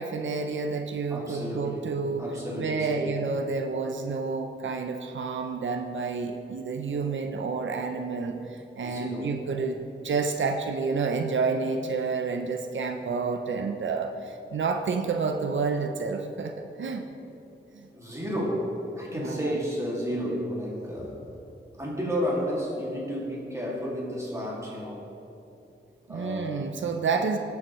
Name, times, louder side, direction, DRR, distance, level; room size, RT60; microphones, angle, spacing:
voice 1, 0.0-2.3 2.6-17.0 17.7-17.9 19.2-19.5 26.1-27.4, right 4 dB, 85° right, 5 dB, 0.6 m, -29 dB
voice 2, 1.1-3.2 8.8-9.4 17.9-21.2 21.8-25.1 26.1-26.6, equal, 15° right, -5 dB, 2.2 m, -32 dB
18.0 x 7.1 x 3.1 m, 2.8 s
wide cardioid pair, 110°, 19 cm